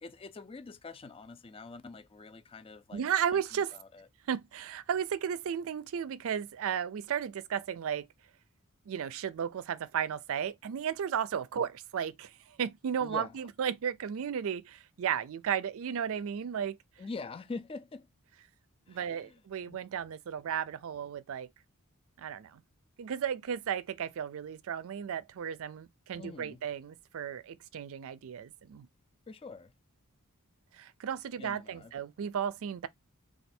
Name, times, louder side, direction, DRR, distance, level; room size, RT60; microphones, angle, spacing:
voice 1, 0.0-3.0 3.3-4.1 11.6-11.7 13.0-13.5 17.0-18.1 18.9-19.4 19.7-19.8 26.2-26.6 29.3-29.7 31.4-31.9, left 4 dB, 25° left, 0.4 m, -45 dB
voice 2, 2.9-3.7 4.3-8.1 8.9-16.8 18.9-21.5 22.2-22.6 23.0-28.9 30.7-32.9, right 8 dB, 65° right, 0.4 m, -34 dB
3.2 x 2.3 x 4.2 m
head